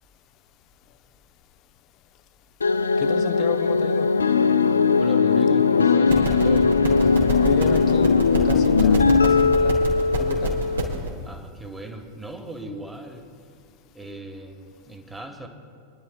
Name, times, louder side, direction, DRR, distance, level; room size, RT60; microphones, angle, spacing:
sound 1, 2.6-11.0, left 4 dB, 75° left, 0.4 m, -19 dB
voice 1, 3.0-4.1 7.4-9.8 10.2-10.6, left 10 dB, 40° left, 0.7 m, -32 dB
voice 2, 5.0-6.7 10.6-10.8 11.2-13.2 13.9-15.5, right 2 dB, 5° right, 1.4 m, -38 dB
sound 2, 6.1-11.1, equal, 75° right, 2.1 m, -28 dB
28.0 x 11.0 x 2.3 m
figure-of-eight pair, 90°, 0 cm